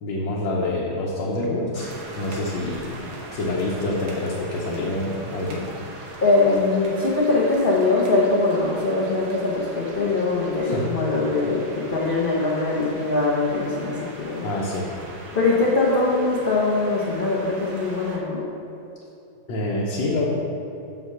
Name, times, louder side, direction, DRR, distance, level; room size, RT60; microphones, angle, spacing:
voice 1, 0.0-1.9 2.2-2.8 3.3-5.6 10.6-10.8 14.4-14.8 19.5-20.2, left 2 dB, 75° left, -5 dB, 1.6 m, -26 dB
sound 1, 1.7-18.2, right 2 dB, 85° right, 1.9 m, -40 dB
voice 2, 6.2-14.4 15.3-18.5, left 3 dB, 45° left, -5 dB, 0.7 m, -22 dB
5.8 x 5.4 x 6.7 m, 2.9 s
omnidirectional pair, 2.1 m